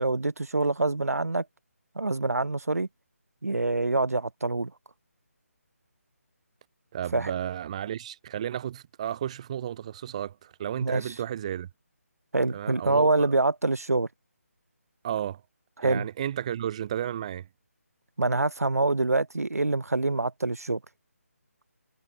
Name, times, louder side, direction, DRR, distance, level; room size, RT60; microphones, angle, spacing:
voice 1, 0.0-1.5 2.0-2.9 3.4-4.7 7.1-7.3 10.8-11.1 12.3-14.1 15.8-16.1 18.2-20.8, right 2 dB, 80° right, 0.6 m, -25 dB
voice 2, 6.9-11.7 12.5-13.3 15.0-15.4 15.8-17.5, right 10 dB, 25° right, 0.7 m, -33 dB
figure-of-eight pair, 150°, 8 cm